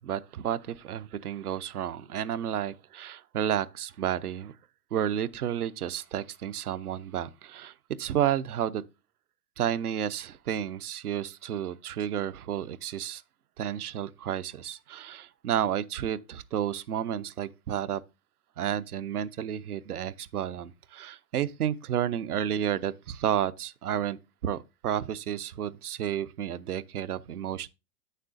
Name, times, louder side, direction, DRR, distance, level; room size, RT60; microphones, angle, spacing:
voice 1, 0.0-4.5 4.9-8.8 9.6-13.2 13.6-18.0 18.6-27.7, right 10 dB, 75° right, 0.7 m, -31 dB
8.9 x 6.6 x 2.6 m
figure-of-eight pair, 105°, 45 cm